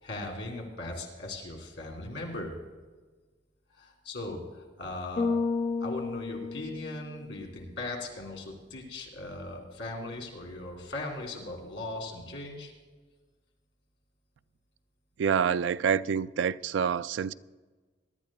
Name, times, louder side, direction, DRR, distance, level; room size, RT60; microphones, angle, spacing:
voice 1, 0.0-2.5 3.7-5.4 5.8-12.7, left 2 dB, 85° left, 2.8 m, -39 dB
Bass guitar, 5.2-7.5, left 4 dB, 45° left, 0.8 m, -31 dB
voice 2, 15.2-17.3, right 7 dB, 75° right, 0.3 m, -27 dB
22.5 x 12.0 x 2.3 m
head